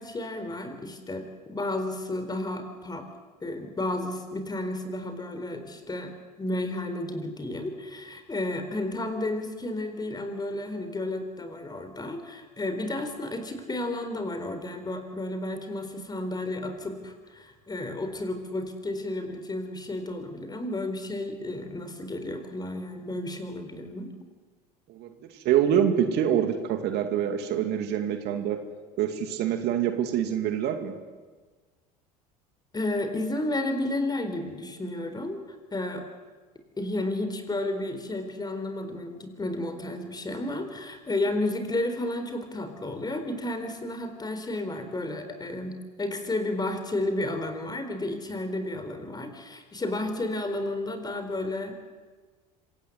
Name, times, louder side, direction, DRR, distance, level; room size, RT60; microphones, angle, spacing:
voice 1, 0.0-3.1 3.4-6.1 6.4-24.1 32.7-35.4 35.7-36.1 36.8-51.7, left 1 dB, 20° left, 8 dB, 4.2 m, -32 dB
voice 2, 25.4-28.6 29.0-30.9, right 9 dB, 55° right, 7 dB, 2.4 m, -25 dB
26.0 x 17.5 x 8.1 m, 1.4 s
hypercardioid pair, 75°, 20 cm